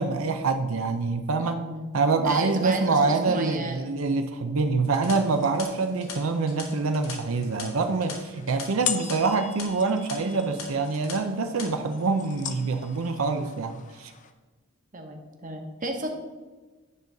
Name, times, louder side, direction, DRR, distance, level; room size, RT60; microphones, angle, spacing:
voice 1, 0.0-1.6 1.9-14.1, right 3 dB, 85° right, 6 dB, 0.6 m, -25 dB
voice 2, 1.4-1.9 2.2-3.9 14.9-16.1, right 2 dB, 40° right, 4 dB, 1.1 m, -33 dB
sound 1, 4.8-9.1 9.4-9.6 10.1-10.2 10.6-11.1 11.4-11.7, left 5 dB, 90° left, 1.8 m, -41 dB
sound 2, 5.2-14.3, left 9 dB, 40° left, 0.6 m, -40 dB
9.7 x 3.9 x 6.6 m, 1.3 s
head